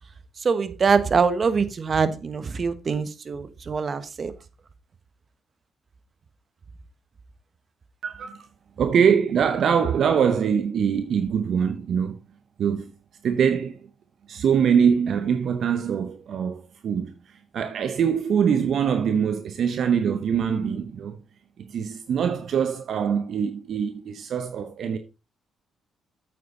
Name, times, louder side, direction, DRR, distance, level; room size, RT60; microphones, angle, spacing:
voice 1, 0.4-4.3, right 5 dB, 50° right, 1.2 m, -24 dB
voice 2, 8.0-8.5 8.8-12.2 12.6-12.9 13.2-13.9 14.3-21.2 21.6-25.0, right 7 dB, 65° right, 0.8 m, -23 dB
8.5 x 8.3 x 3.8 m
supercardioid pair, 55°, 0 cm